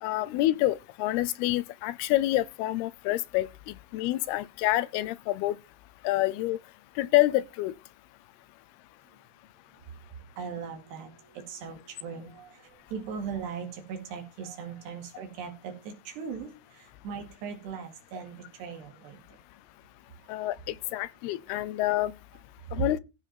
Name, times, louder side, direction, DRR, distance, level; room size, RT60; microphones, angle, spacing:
voice 1, 0.0-5.6 6.0-6.6 7.0-7.7 20.3-22.1 22.7-23.0, left 16 dB, 80° left, 2.6 m, -27 dB
voice 2, 9.7-19.4 20.2-20.5 21.0-21.1 22.7-22.9, right 6 dB, 90° right, 4.4 m, -39 dB
15.0 x 5.3 x 5.7 m
omnidirectional pair, 4.7 m